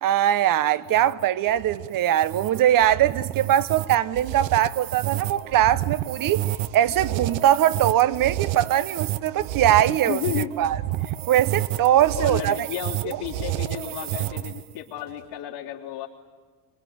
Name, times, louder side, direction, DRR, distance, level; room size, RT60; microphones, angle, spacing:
voice 1, 0.0-6.5 6.7-10.2 10.6-10.8 11.3-12.7, right 12 dB, 40° right, 1.0 m, -21 dB
sound 1, 0.9-14.7, right 14 dB, 65° right, 0.9 m, -30 dB
voice 2, 10.1-10.5 12.2-16.1, left 12 dB, 75° left, 3.5 m, -32 dB
25.5 x 24.0 x 9.5 m
supercardioid pair, 115°, 49 cm